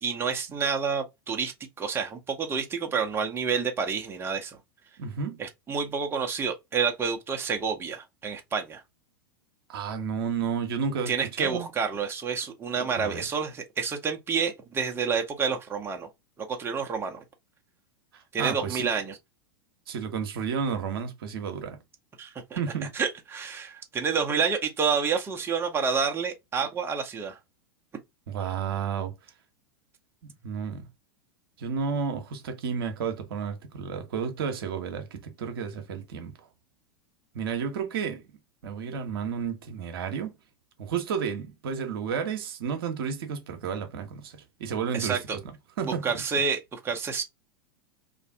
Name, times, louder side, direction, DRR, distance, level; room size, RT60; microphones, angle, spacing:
voice 1, 0.0-4.6 5.4-8.8 11.1-16.1 16.5-17.2 18.3-19.2 22.2-22.3 22.9-27.4 44.9-45.4 45.8-47.2, right 6 dB, 15° right, 0.7 m, -29 dB
voice 2, 5.0-5.4 9.7-11.7 13.0-13.3 18.1-18.9 19.9-21.8 22.5-23.0 28.3-29.1 30.2-30.9 31.6-36.4 37.3-38.2 38.6-40.3 40.8-45.4 45.8-46.1, right 6 dB, 65° right, 0.8 m, -32 dB
2.5 x 2.4 x 3.5 m
figure-of-eight pair, 95°, 13 cm